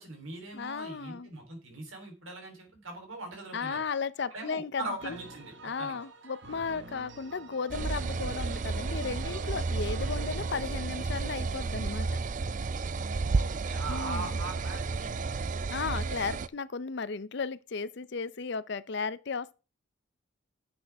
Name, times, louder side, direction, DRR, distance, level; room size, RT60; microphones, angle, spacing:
voice 1, 0.0-3.8 4.3-5.9 13.3-15.3, right 2 dB, 80° right, 3.5 m, -41 dB
voice 2, 0.5-1.3 3.5-5.2 5.6-12.2 13.9-14.4 15.7-19.5, left 5 dB, 55° left, 0.5 m, -35 dB
sound 1, 5.0-10.6, right 3 dB, 60° right, 1.2 m, -48 dB
sound 2, 7.7-16.5, right 4 dB, 40° right, 0.4 m, -32 dB
10.5 x 7.8 x 3.5 m
head